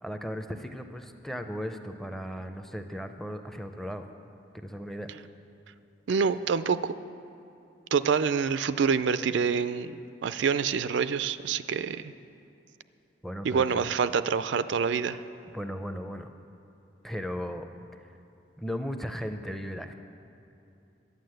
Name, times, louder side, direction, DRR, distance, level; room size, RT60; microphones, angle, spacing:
voice 1, 0.0-4.0 4.5-5.1 13.2-13.9 15.5-16.3 17.0-17.7 18.6-19.9, equal, ahead, 6 dB, 0.5 m, -36 dB
voice 2, 6.1-6.9 7.9-12.1 13.4-15.2, right 6 dB, 75° right, 13 dB, 0.4 m, -26 dB
11.5 x 9.3 x 7.7 m, 2.7 s
head